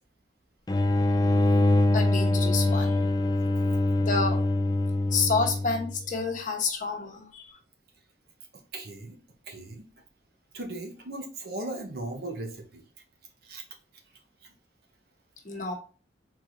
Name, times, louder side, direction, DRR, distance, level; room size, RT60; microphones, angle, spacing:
sound 1, 0.7-6.0, left 2 dB, 20° left, 0.4 m, -24 dB
voice 1, 1.9-3.0 4.0-4.4 5.1-7.6 15.4-15.7, left 4 dB, 45° left, 1 dB, 1.1 m, -29 dB
voice 2, 8.7-9.1 9.5-9.9 10.5-12.8 13.5-13.6, right 2 dB, 55° right, 2 dB, 1.0 m, -37 dB
4.7 x 4.0 x 2.6 m, 0.37 s
head